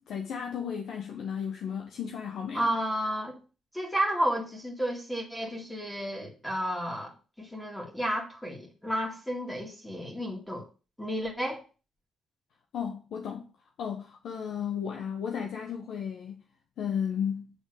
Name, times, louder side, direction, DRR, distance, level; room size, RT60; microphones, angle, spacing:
voice 1, 0.1-2.7 12.7-13.5 13.8-16.4 16.8-17.5, left 7 dB, 70° left, 1.0 m, -34 dB
voice 2, 2.5-3.4 3.7-10.6 11.0-11.6, equal, 5° left, 2.2 m, -32 dB
7.9 x 3.8 x 6.4 m
cardioid pair, 90°, 0 cm